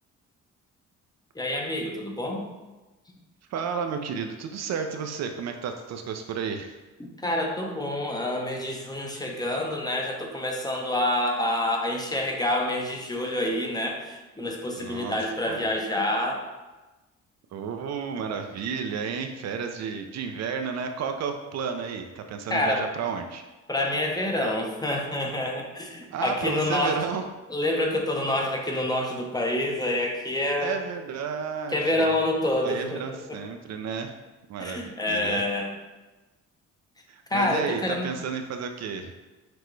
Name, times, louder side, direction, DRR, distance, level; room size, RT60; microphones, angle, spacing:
voice 1, 1.3-2.4 7.2-16.5 22.5-22.9 23.7-27.0 27.5-30.8 31.7-33.0 33.3-33.4 34.6-35.7 37.3-38.2, left 1 dB, 15° left, 1 dB, 0.6 m, -27 dB
voice 2, 3.5-6.7 14.8-15.2 15.5-15.7 17.5-23.4 26.1-27.2 30.6-32.1 32.6-34.1 34.5-35.4 37.1-39.1, right 6 dB, 60° right, 6 dB, 0.4 m, -32 dB
5.9 x 2.2 x 3.1 m, 1.1 s
cardioid pair, 90°, 30 cm